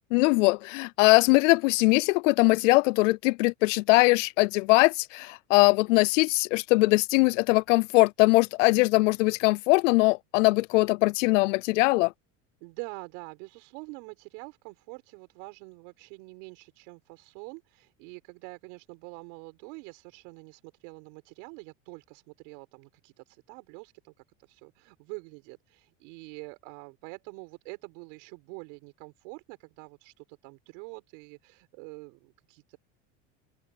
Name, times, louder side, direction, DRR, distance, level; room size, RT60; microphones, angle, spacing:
voice 1, 0.1-12.1, left 24 dB, 80° left, 0.5 m, -21 dB
voice 2, 12.6-24.1 24.4-32.8, right 32 dB, 70° right, 5.9 m, -45 dB
supercardioid pair, 115°, 36 cm